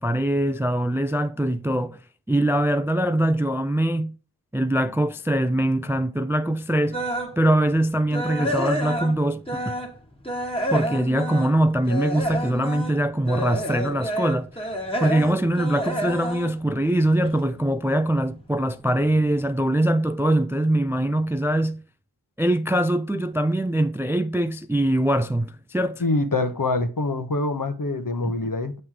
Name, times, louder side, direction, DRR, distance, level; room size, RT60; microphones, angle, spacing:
voice 1, 0.0-2.0 2.3-4.1 4.5-7.0 7.4-9.8 10.7-14.7 15.0-21.8 22.4-26.0, right 1 dB, 5° right, 0.3 m, -23 dB
sound 1, 6.9-7.4 7.8-10.0 10.2-17.5 17.8-18.1 18.6-18.7 19.0-19.1, equal, 15° left, 1.4 m, -29 dB
voice 2, 26.0-28.8, left 2 dB, 55° left, 0.9 m, -25 dB
7.3 x 3.3 x 4.5 m
wide cardioid pair, 45°, 39 cm